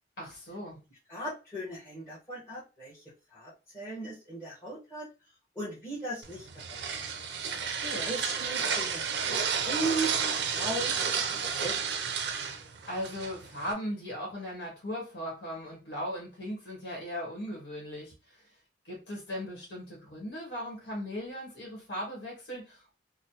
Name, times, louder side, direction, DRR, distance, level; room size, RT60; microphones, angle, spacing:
voice 1, 0.2-0.8 7.5-8.1 12.9-18.5 18.8-22.9, equal, 70° left, -2 dB, 1.3 m, -38 dB
voice 2, 1.1-3.0 3.3-5.1 5.5-6.9 8.0-10.1 10.5-10.9 11.3-11.8, right 2 dB, 15° left, -12 dB, 1.2 m, -37 dB
sound 1, 6.2-13.7, right 6 dB, 70° right, 0.5 m, -32 dB
3.1 x 2.2 x 2.8 m, 0.29 s
head